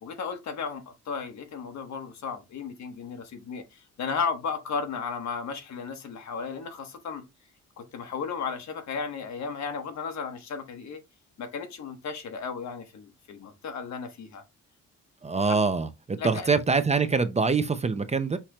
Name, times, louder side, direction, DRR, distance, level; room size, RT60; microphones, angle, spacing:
voice 1, 0.0-7.2 7.8-11.0 11.4-14.4 15.4-15.6 16.2-16.5, left 5 dB, 65° left, 1.4 m, -34 dB
voice 2, 15.2-18.4, right 4 dB, 20° right, 0.6 m, -24 dB
5.9 x 3.1 x 2.9 m
cardioid pair, 90°, 30 cm